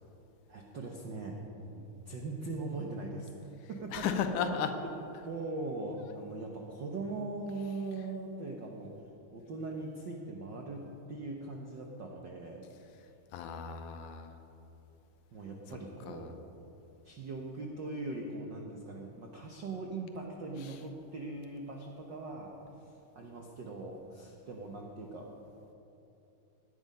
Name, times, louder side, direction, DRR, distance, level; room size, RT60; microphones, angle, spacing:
voice 1, 0.5-3.3 3.7-4.4 5.2-8.9 9.3-10.8 11.1-12.7 15.3-16.3 17.0-25.3, right 2 dB, 75° right, 1 dB, 1.0 m, -40 dB
voice 2, 3.9-4.7 13.3-14.3 16.1-16.3 20.6-20.7, left 7 dB, 75° left, 7 dB, 2.2 m, -34 dB
17.5 x 10.5 x 5.5 m, 2.9 s
omnidirectional pair, 3.7 m